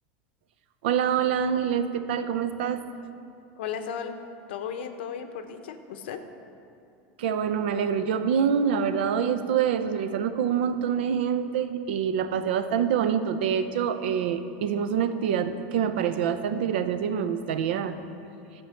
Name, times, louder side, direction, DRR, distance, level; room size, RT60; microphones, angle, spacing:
voice 1, 0.8-2.8 7.2-18.0, right 8 dB, 85° right, 10 dB, 0.6 m, -26 dB
voice 2, 3.6-4.1 4.5-6.2, left 7 dB, 90° left, 7 dB, 0.8 m, -35 dB
11.5 x 4.6 x 7.6 m, 2.7 s
supercardioid pair, 160°, 6 cm